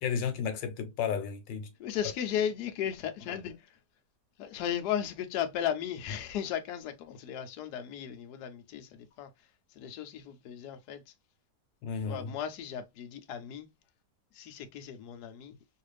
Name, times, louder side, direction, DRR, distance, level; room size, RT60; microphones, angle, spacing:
voice 1, 0.0-1.7 11.8-12.3, left 7 dB, 85° left, 1.4 m, -33 dB
voice 2, 1.8-3.8 4.4-11.1 12.0-13.7 14.3-15.5, left 9 dB, 70° left, 1.1 m, -36 dB
3.2 x 2.4 x 3.2 m
omnidirectional pair, 2.0 m